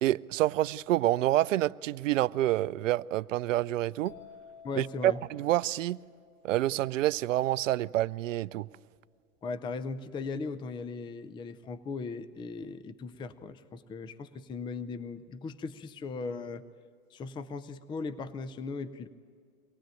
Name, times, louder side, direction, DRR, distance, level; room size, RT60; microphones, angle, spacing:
voice 1, 0.0-4.1 4.8-6.0 6.4-8.7, right 14 dB, 60° right, 0.6 m, -28 dB
sound 1, 4.0-7.7, left 7 dB, 45° left, 3.7 m, -55 dB
voice 2, 4.6-5.2 9.4-16.6 17.1-19.1, left 4 dB, 10° left, 0.6 m, -38 dB
24.5 x 18.0 x 9.1 m
hypercardioid pair, 110°, 44 cm